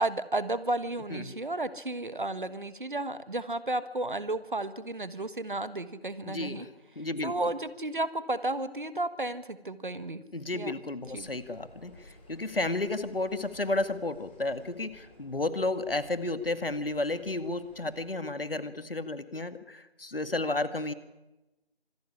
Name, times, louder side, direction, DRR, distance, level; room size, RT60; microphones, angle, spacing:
voice 1, 0.0-6.7 7.2-10.2 10.5-10.7 11.1-11.3, right 2 dB, 50° right, 14 dB, 1.5 m, -33 dB
voice 2, 6.2-7.5 10.3-20.9, left 2 dB, 60° left, 12 dB, 1.9 m, -32 dB
sound 1, 11.0-18.1, left 1 dB, 10° left, 3.1 m, -56 dB
25.5 x 13.5 x 10.0 m, 1.0 s
figure-of-eight pair, 170°, 32 cm